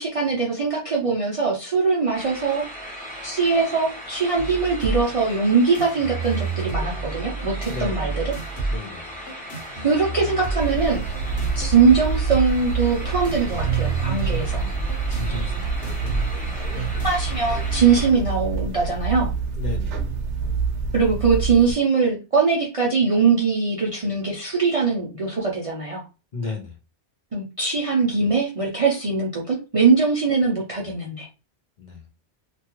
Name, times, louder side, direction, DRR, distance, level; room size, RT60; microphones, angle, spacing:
voice 1, 0.0-2.7 3.2-8.3 9.8-11.0 11.5-14.6 17.0-19.3 20.9-26.0 27.3-31.3, right 5 dB, 45° right, -3 dB, 0.5 m, -21 dB
sound 1, 2.1-18.1, equal, 10° left, 0.7 m, -38 dB
sound 2, 4.4-18.4, right 3 dB, 70° left, 1.4 m, -31 dB
voice 2, 7.7-8.1 8.7-9.2 14.5-15.7 16.7-17.0 19.6-20.1 26.3-26.8 31.8-32.0, left 4 dB, 45° left, 1 dB, 0.7 m, -34 dB
sound 3, 10.6-21.7, right 5 dB, 85° right, 0.9 m, -27 dB
2.9 x 2.3 x 2.9 m, 0.31 s
omnidirectional pair, 1.2 m